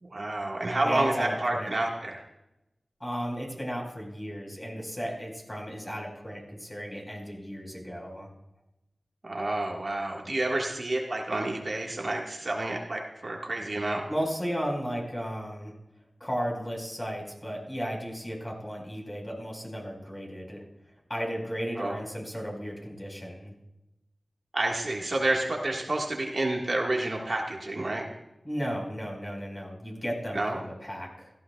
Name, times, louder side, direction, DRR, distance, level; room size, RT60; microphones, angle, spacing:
voice 1, 0.0-2.2 9.2-14.0 21.8-22.0 24.5-28.0 30.3-30.6, right 2 dB, 55° right, -1 dB, 1.7 m, -29 dB
voice 2, 0.8-1.7 3.0-8.3 14.1-15.7 16.2-20.6 21.1-23.5 28.4-31.3, equal, 20° left, -1 dB, 4.7 m, -34 dB
16.5 x 15.0 x 2.3 m, 0.92 s
wide cardioid pair, 60°, 0 cm